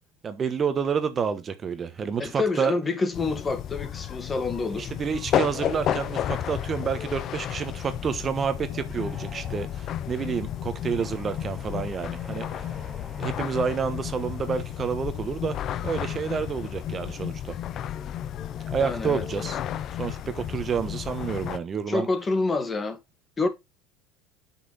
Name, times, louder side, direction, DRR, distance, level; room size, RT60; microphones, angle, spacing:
voice 1, 0.2-2.8 4.7-12.7 13.2-15.6 15.8-17.6 18.7-19.6 20.0-22.1, right 6 dB, 30° right, 1.2 m, -29 dB
voice 2, 2.2-4.9 18.8-19.2 21.9-23.0 23.4-23.5, left 3 dB, 20° left, 1.6 m, -27 dB
sound 1, 3.1-21.6, left 10 dB, 50° left, 0.7 m, -32 dB
sound 2, 9.0-14.5, equal, ahead, 2.2 m, -49 dB
7.9 x 6.0 x 4.1 m
supercardioid pair, 100°, 0 cm